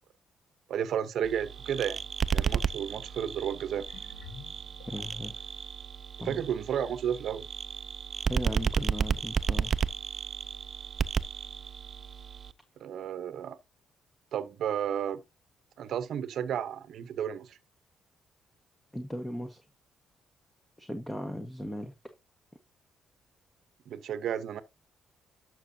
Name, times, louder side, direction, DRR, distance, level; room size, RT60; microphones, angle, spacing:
voice 1, 0.7-2.0 2.3-3.9 6.2-7.4 12.8-13.6 14.3-15.2 15.8-17.6 23.9-24.6, right 9 dB, 70° right, 0.8 m, -32 dB
sound 1, 1.2-12.5, right 6 dB, 45° right, 0.5 m, -33 dB
sound 2, 3.0-5.5 6.2-6.3, left 5 dB, 80° left, 1.4 m, -52 dB
voice 2, 4.9-5.3 6.2-6.4 8.3-9.7 18.9-19.6 20.8-21.9, equal, 5° left, 1.2 m, -37 dB
11.5 x 6.2 x 2.7 m
cardioid pair, 90°, 0 cm